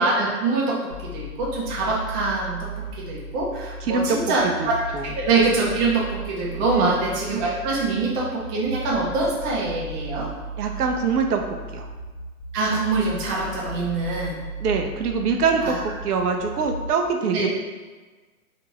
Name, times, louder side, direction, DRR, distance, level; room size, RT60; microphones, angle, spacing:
voice 1, 0.0-2.7 3.0-4.8 5.0-10.3 12.5-14.4 15.6-15.8 17.3-17.5, right 3 dB, 20° right, -4 dB, 0.5 m, -24 dB
sound 1, 0.9-16.9, right 1 dB, 55° left, 0.8 m, -36 dB
voice 2, 3.9-5.1 6.7-7.0 10.6-11.4 11.7-11.9 14.6-17.5, right 5 dB, 85° right, 4 dB, 0.5 m, -24 dB
2.9 x 2.5 x 2.9 m, 1.3 s
hypercardioid pair, 120°, 45 cm